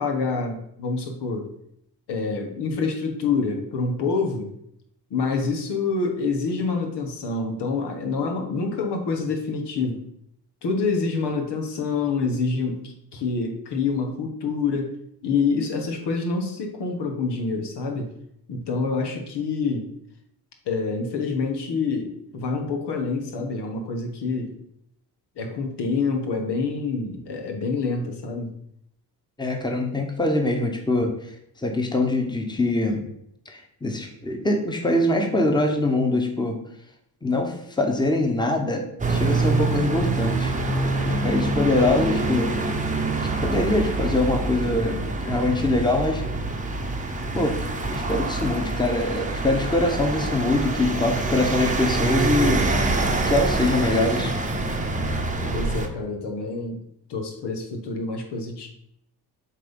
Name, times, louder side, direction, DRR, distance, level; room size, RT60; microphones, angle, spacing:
voice 1, 0.0-1.5 2.1-4.5 5.1-10.0 10.6-14.9 15.2-18.1 18.5-19.9 20.7-24.5 25.4-28.5 55.5-56.8 57.1-58.7, left 4 dB, 75° left, 3 dB, 1.3 m, -27 dB
voice 2, 29.4-31.3 31.6-33.0 33.5-36.6 37.2-38.8 39.1-40.5 41.1-42.6 43.4-46.2 47.3-47.6 47.8-52.6 53.3-54.3, left 2 dB, 10° left, 3 dB, 1.2 m, -23 dB
sound 1, 39.0-55.9, right 2 dB, 20° right, 0.9 m, -25 dB
7.4 x 2.9 x 5.3 m, 0.73 s
cardioid pair, 75°, 41 cm